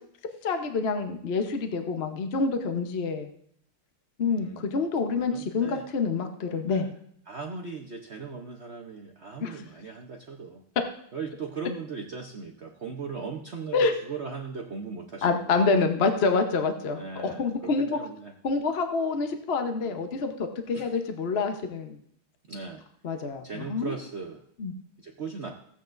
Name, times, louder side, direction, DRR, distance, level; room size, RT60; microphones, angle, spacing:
voice 1, 0.4-3.3 4.2-6.9 9.4-9.6 13.7-13.9 15.2-18.0 18.4-22.0 23.0-23.9 24.6-24.7, left 4 dB, 55° left, 6 dB, 0.7 m, -27 dB
voice 2, 4.2-4.7 5.3-5.8 6.7-6.9 7.3-10.6 11.1-15.9 16.9-18.3 19.8-20.0 20.7-20.9 22.5-22.8 23.4-24.4 25.0-25.6, right 4 dB, 80° right, 2 dB, 0.6 m, -38 dB
15.5 x 8.9 x 2.6 m, 0.65 s
omnidirectional pair, 2.3 m